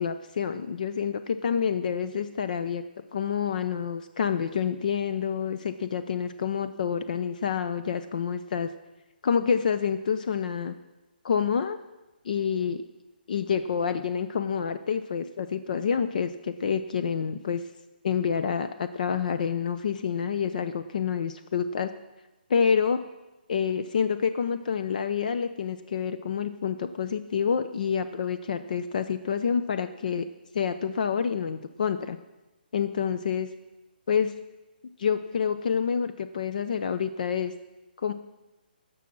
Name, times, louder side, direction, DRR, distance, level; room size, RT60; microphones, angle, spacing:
voice 1, 0.0-2.8 3.1-8.7 9.2-10.7 11.2-11.8 12.2-12.8 13.3-17.6 18.0-21.9 22.5-23.0 23.5-30.3 30.5-32.2 32.7-33.5 34.1-34.3 35.0-37.5 38.0-38.1, left 7 dB, 50° left, 11 dB, 0.6 m, -28 dB
16.0 x 6.3 x 6.0 m, 1.0 s
hypercardioid pair, 160°, 5 cm